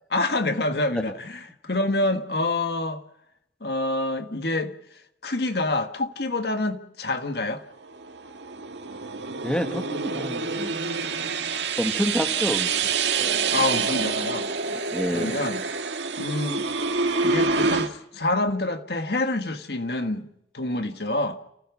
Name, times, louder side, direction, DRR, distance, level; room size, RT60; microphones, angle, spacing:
voice 1, 0.1-3.0 3.6-4.7 5.2-7.6 13.5-14.5 15.1-15.6 16.2-16.7 17.2-20.2 20.5-21.4, left 2 dB, 65° left, 1.6 m, -27 dB
sound 1, 7.8-17.9, right 4 dB, 80° right, 2.0 m, -27 dB
voice 2, 9.4-10.7 11.8-12.7 13.2-13.3 14.9-15.4, equal, 5° left, 1.6 m, -28 dB
30.0 x 16.0 x 6.0 m
head